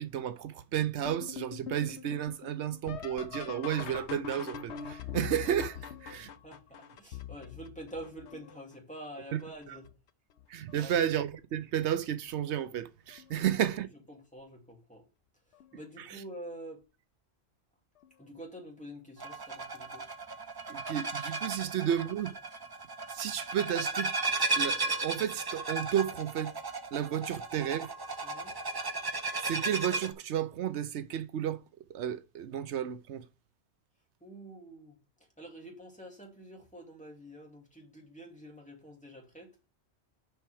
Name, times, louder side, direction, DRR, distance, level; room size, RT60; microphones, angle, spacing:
voice 1, 0.0-6.3 9.3-9.4 10.5-13.9 16.0-16.2 20.7-22.3 23.1-24.1 24.6-26.5 26.9-27.9 29.4-31.6 31.9-33.3, right 10 dB, 85° right, 1.0 m, -32 dB
sound 1, 1.0-8.7 9.4-9.9 10.4-11.0 12.3-12.4 13.1-13.4 15.6-15.7 18.0-18.1, left 8 dB, 85° left, 1.0 m, -43 dB
voice 2, 6.1-9.9 10.7-11.0 13.4-13.8 14.1-15.1 15.7-16.8 18.2-20.1 21.6-21.7 28.2-28.6 34.2-35.0 35.4-39.6, right 1 dB, 5° left, 2.4 m, -47 dB
sound 2, 19.2-30.1, right 3 dB, 30° right, 0.5 m, -35 dB
6.8 x 5.6 x 4.8 m
omnidirectional pair, 1.1 m